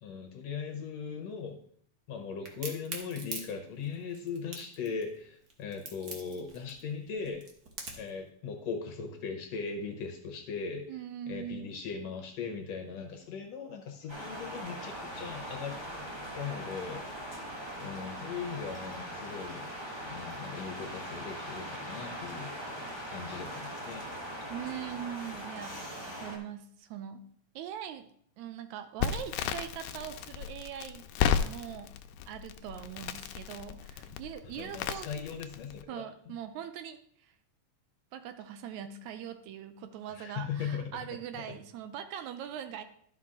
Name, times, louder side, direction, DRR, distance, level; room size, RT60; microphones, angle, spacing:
voice 1, 0.0-1.6 2.1-7.5 8.0-10.8 11.3-15.8 16.3-17.1 17.8-19.7 20.1-22.6 23.1-24.1 34.0-34.1 34.4-36.4 40.1-41.0 41.3-41.6, left 6 dB, 70° left, 3 dB, 1.9 m, -39 dB
Crack, 2.4-8.1, right 3 dB, 60° right, 1.0 m, -42 dB
voice 2, 10.9-11.7 24.5-25.8 26.1-27.2 27.6-28.1 28.4-31.1 31.4-31.9 32.3-35.1 35.9-37.3 38.1-42.8, right 9 dB, 80° right, 10 dB, 1.8 m, -41 dB
sound 1, 14.1-26.4, equal, 40° right, 0.3 m, -41 dB
Crackle, 29.0-35.8, left 8 dB, 90° left, 2.1 m, -34 dB
11.5 x 5.8 x 3.7 m, 0.64 s
omnidirectional pair, 3.5 m